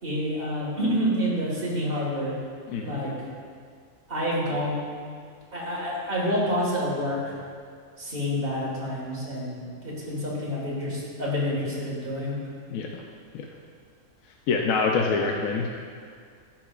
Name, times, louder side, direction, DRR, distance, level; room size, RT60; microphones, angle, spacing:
voice 1, 0.0-2.4 2.8-3.1 4.1-4.8 5.5-7.4 8.0-12.4, equal, 35° right, -5 dB, 1.9 m, -28 dB
voice 2, 2.7-3.0 12.7-12.9 13.3-13.5 14.5-15.7, left 4 dB, 70° left, 1 dB, 0.9 m, -25 dB
13.0 x 5.9 x 2.4 m, 2.1 s
omnidirectional pair, 1.7 m